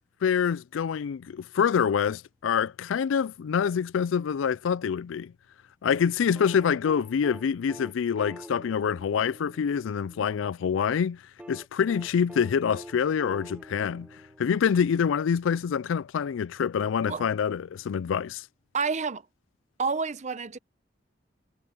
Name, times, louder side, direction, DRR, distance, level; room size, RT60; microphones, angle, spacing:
voice 1, 0.2-5.3 5.8-11.2 11.5-14.1 14.4-18.4, left 7 dB, 85° left, 0.4 m, -26 dB
sound 1, 6.4-10.4 11.4-15.0 16.4-16.5, equal, 5° right, 1.2 m, -46 dB
voice 2, 18.7-19.2 19.8-20.6, right 5 dB, 40° right, 0.8 m, -29 dB
head